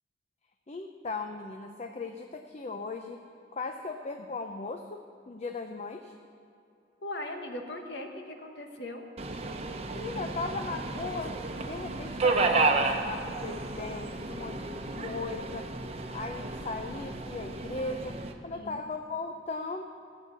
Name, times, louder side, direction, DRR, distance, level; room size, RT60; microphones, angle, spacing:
voice 1, 0.7-3.2 3.5-6.1 9.9-15.7 16.1-19.8, left 3 dB, 40° left, 5 dB, 0.7 m, -37 dB
voice 2, 7.0-9.0 14.6-15.2 18.5-18.8, left 1 dB, 65° left, 3 dB, 1.4 m, -40 dB
Subway metro underground, 9.2-18.3, right 3 dB, 35° right, 0.9 m, -32 dB
16.0 x 8.3 x 6.9 m, 2.6 s
head